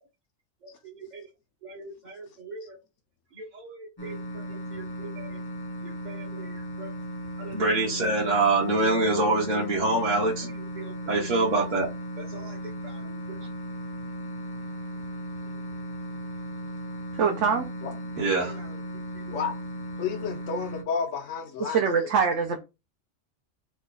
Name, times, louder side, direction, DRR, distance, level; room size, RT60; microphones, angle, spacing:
voice 1, 0.6-1.2 1.6-2.8 3.4-4.4 4.7-5.4 5.8-6.9 7.4-11.9 12.2-12.6 12.8-13.1 18.2-18.7, right 2 dB, 45° right, 0.7 m, -28 dB
sound 1, 4.0-20.8, equal, 30° left, 0.4 m, -36 dB
voice 2, 17.1-17.7 21.6-22.6, right 6 dB, 75° right, 0.9 m, -24 dB
voice 3, 20.0-21.8, left 6 dB, 75° left, 0.9 m, -30 dB
3.1 x 2.2 x 3.8 m
omnidirectional pair, 1.3 m